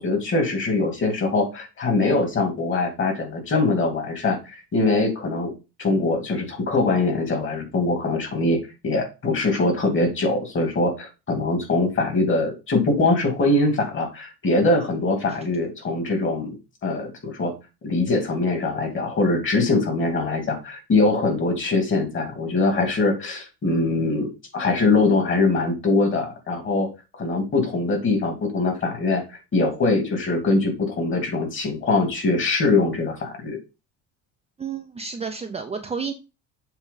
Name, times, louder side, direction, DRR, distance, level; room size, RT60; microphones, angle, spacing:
voice 1, 0.0-5.5 5.8-8.6 8.8-16.5 16.8-17.5 17.8-26.9 27.2-29.2 29.5-33.6, left 3 dB, 35° left, 4 dB, 2.5 m, -22 dB
voice 2, 34.6-36.1, right 5 dB, 20° right, 4 dB, 0.7 m, -31 dB
7.5 x 3.2 x 5.3 m, 0.28 s
cardioid pair, 125°, 35 cm